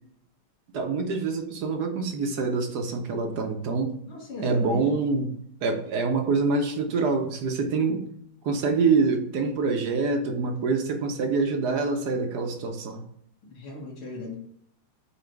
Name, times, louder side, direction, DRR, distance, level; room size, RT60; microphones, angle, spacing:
voice 1, 0.7-4.0 4.4-5.3 5.6-8.0 8.4-13.1, right 4 dB, 60° right, 4 dB, 1.3 m, -25 dB
voice 2, 4.1-4.9 13.4-14.3, left 1 dB, 80° left, -5 dB, 2.4 m, -37 dB
8.5 x 3.1 x 4.6 m, 0.70 s
omnidirectional pair, 2.3 m